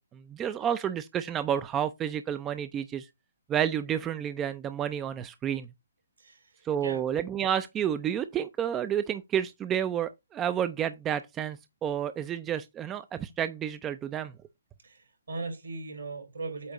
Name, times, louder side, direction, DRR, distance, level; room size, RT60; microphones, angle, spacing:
voice 1, 0.0-3.1 3.5-5.7 6.6-14.3, right 9 dB, 15° right, 0.4 m, -30 dB
voice 2, 6.2-7.0 14.8-16.7, right 3 dB, 75° right, 3.7 m, -39 dB
8.4 x 2.9 x 5.2 m
hypercardioid pair, 140°, 0 cm